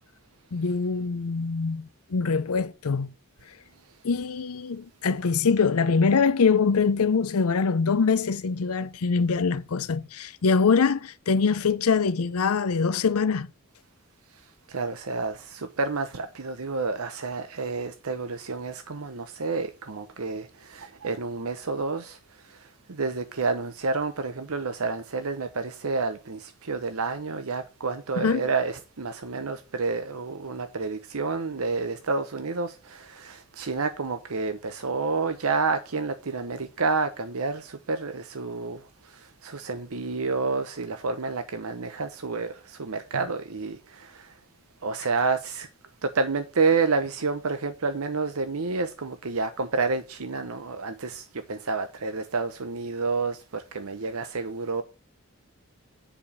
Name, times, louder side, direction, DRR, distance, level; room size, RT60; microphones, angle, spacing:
voice 1, 0.5-3.1 4.0-13.5 28.2-28.4, left 5 dB, 90° left, 0.6 m, -24 dB
voice 2, 14.7-22.2 22.5-44.3 44.8-45.7 46.0-54.8, right 4 dB, 85° right, 0.9 m, -29 dB
10.0 x 5.0 x 6.7 m
head